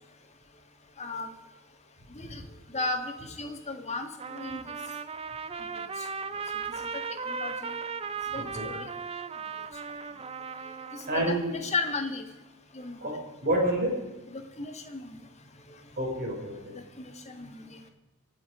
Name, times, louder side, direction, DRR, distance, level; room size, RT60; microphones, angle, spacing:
voice 1, 1.0-1.3 2.1-2.4 2.7-4.7 5.7-6.1 6.8-7.8 8.3-8.9 10.6-12.2 12.7-13.1 14.3-15.2 15.6-15.8 16.7-17.8, left 3 dB, 30° left, 5 dB, 1.7 m, -36 dB
Trumpet, 4.2-11.3, right 5 dB, 25° right, 0.6 m, -37 dB
voice 2, 8.3-8.7 11.1-11.6 13.0-13.2 13.4-14.0 16.0-16.7, right 1 dB, 45° right, -1 dB, 4.8 m, -28 dB
24.0 x 8.2 x 5.0 m, 1.1 s
head